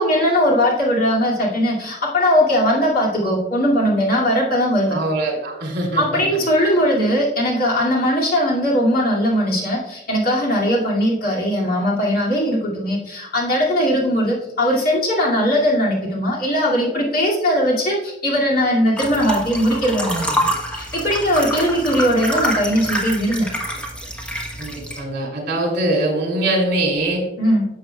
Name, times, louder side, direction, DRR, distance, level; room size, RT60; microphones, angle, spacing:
voice 1, 0.0-5.0 6.0-23.5 27.4-27.7, equal, 55° left, -4 dB, 2.4 m, -19 dB
voice 2, 4.9-6.2 24.6-27.2, right 1 dB, 65° right, 1 dB, 2.7 m, -22 dB
sound 1, 19.0-25.0, equal, 5° left, 1.2 m, -26 dB
11.5 x 7.2 x 2.3 m, 0.91 s
head